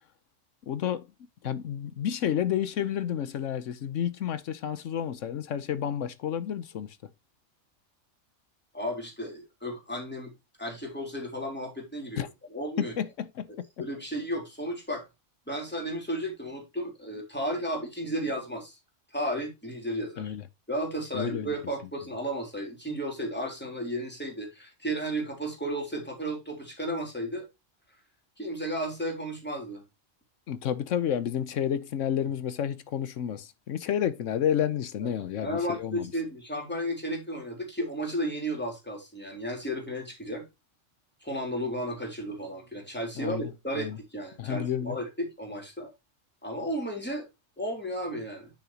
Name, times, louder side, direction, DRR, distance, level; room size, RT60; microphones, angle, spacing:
voice 1, 0.6-1.1 1.4-7.0 12.2-12.3 12.8-13.5 20.2-20.4 21.1-21.5 30.5-36.1 43.2-43.5 43.7-44.0 44.4-45.0, left 9 dB, 85° left, 1.1 m, -30 dB
voice 2, 8.7-10.3 10.6-12.9 13.8-15.1 15.5-18.8 19.1-20.3 20.7-27.5 28.4-29.8 35.0-35.1 35.4-40.5 41.2-45.9 46.4-47.3 47.6-48.5, equal, 10° left, 3.5 m, -33 dB
10.0 x 6.2 x 2.9 m
omnidirectional pair, 1.3 m